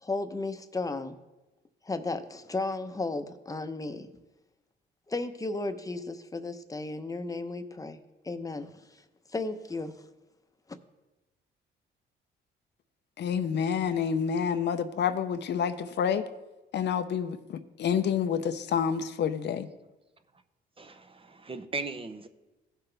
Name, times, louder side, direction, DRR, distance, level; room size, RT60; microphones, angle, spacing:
voice 1, 0.0-1.2 1.8-4.1 5.1-8.0 8.2-9.0 9.3-9.9, left 3 dB, 15° left, 0.8 m, -34 dB
voice 2, 13.2-16.3 16.7-19.7, left 7 dB, 60° left, 0.6 m, -28 dB
voice 3, 20.8-22.3, right 3 dB, 25° right, 0.7 m, -38 dB
16.5 x 5.7 x 3.4 m
cardioid pair, 90°, 20 cm